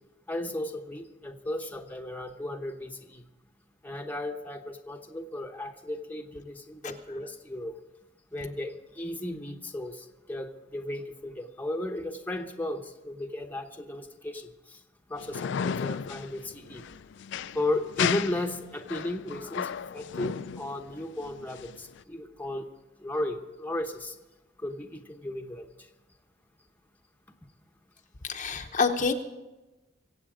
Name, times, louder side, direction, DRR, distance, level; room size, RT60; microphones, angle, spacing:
voice 1, 0.3-3.2 3.8-7.8 8.3-14.5 15.1-16.8 17.5-22.7 23.0-24.1 24.6-25.7, left 1 dB, 10° left, 4 dB, 0.9 m, -35 dB
sound 1, 15.2-22.0, left 7 dB, 65° left, 0.4 m, -34 dB
voice 2, 28.2-29.1, left 5 dB, 40° left, 5 dB, 0.8 m, -27 dB
23.5 x 8.1 x 5.0 m, 1.1 s
head